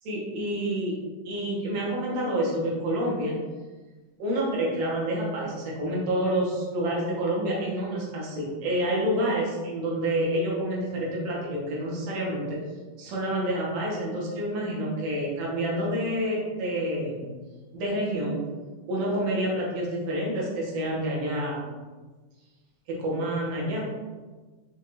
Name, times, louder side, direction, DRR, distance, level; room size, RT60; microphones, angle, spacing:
voice 1, 0.0-1.0 1.3-3.3 4.2-12.6 13.0-17.3 17.7-18.4 18.9-21.7 22.9-23.9, right 1 dB, 65° right, -4 dB, 1.6 m, -28 dB
6.3 x 2.5 x 2.9 m, 1.3 s
omnidirectional pair, 4.2 m